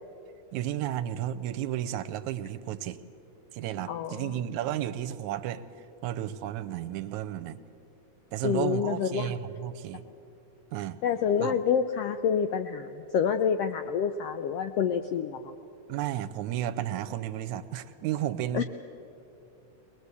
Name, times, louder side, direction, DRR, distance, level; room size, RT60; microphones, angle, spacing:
voice 1, 0.5-3.0 3.5-5.6 6.0-7.6 8.3-10.0 10.7-11.0 11.4-11.5 15.9-18.6, right 12 dB, 80° right, 12 dB, 2.0 m, -33 dB
voice 2, 3.9-4.4 8.4-9.3 11.0-15.5 18.5-18.6, left 7 dB, 80° left, 8 dB, 1.4 m, -28 dB
22.0 x 20.5 x 8.2 m, 2.8 s
omnidirectional pair, 3.5 m